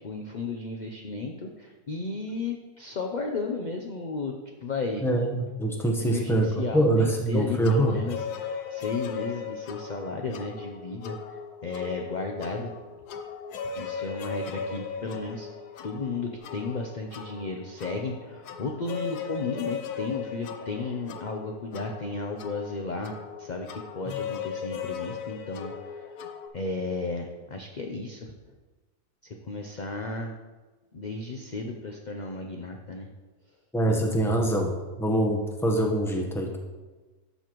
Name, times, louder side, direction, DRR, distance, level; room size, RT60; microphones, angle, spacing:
voice 1, 0.0-4.3 4.6-5.0 6.0-11.2 11.6-12.7 13.8-15.5 15.8-26.0 26.5-28.3 29.2-30.3 30.9-33.1, left 3 dB, 55° left, 2 dB, 0.5 m, -34 dB
voice 2, 5.0-8.0 24.1-24.2 33.7-36.6, right 1 dB, ahead, 1 dB, 0.8 m, -24 dB
sound 1, 7.6-26.5, left 7 dB, 90° left, 1.3 m, -38 dB
12.0 x 6.7 x 3.0 m, 1.2 s
omnidirectional pair, 1.6 m